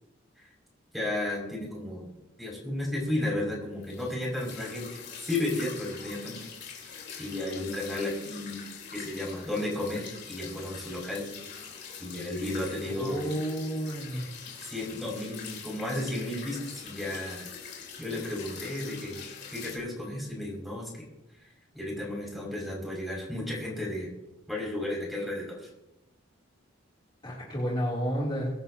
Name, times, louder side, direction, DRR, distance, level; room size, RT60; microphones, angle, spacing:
voice 1, 0.9-2.1 2.4-6.5 6.7-6.9 7.2-8.6 8.9-11.3 12.0-13.3 14.6-17.5 18.0-19.2 19.5-21.0 21.7-24.1 24.5-25.7, left 1 dB, ahead, -3 dB, 5.9 m, -33 dB
sound 1, 3.8-19.8, left 6 dB, 55° left, 3.8 m, -44 dB
voice 2, 12.9-14.2 27.2-28.5, equal, 25° left, -6 dB, 3.0 m, -31 dB
23.5 x 11.0 x 2.8 m, 0.93 s
head